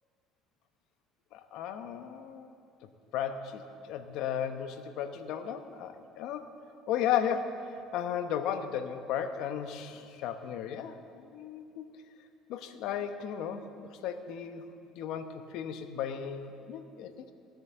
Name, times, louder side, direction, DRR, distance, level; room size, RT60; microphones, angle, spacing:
voice 1, 1.3-2.5 3.1-3.6 3.9-6.4 6.9-11.9 12.5-14.6 14.9-17.3, left 8 dB, 70° left, 8 dB, 0.9 m, -35 dB
16.0 x 7.8 x 6.9 m, 2.5 s
cardioid pair, 110°, 0 cm